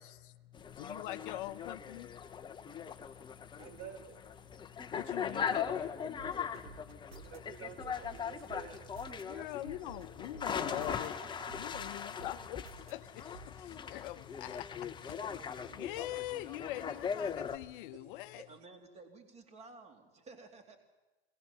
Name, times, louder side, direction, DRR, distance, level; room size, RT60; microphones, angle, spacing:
voice 1, 0.0-3.6 4.6-7.3 9.2-11.1 11.5-18.5, left 15 dB, 60° left, 11 dB, 1.0 m, -44 dB
sound 1, 0.5-17.6, left 7 dB, 15° left, 0.9 m, -40 dB
voice 2, 2.8-3.2 3.5-4.2 7.2-10.0 15.2-15.3 15.6-16.1 18.3-18.4, right 7 dB, 60° right, 2 dB, 5.5 m, -52 dB
sound 2, 6.2-7.4 7.8-9.2 9.7-11.1 11.5-12.9 13.3-13.5, right 6 dB, 85° right, 1.6 m, -52 dB
voice 3, 10.5-11.5 18.5-20.8, right 3 dB, 20° right, 5 dB, 2.7 m, -53 dB
21.0 x 18.5 x 6.8 m, 1.1 s
hypercardioid pair, 120°, 30 cm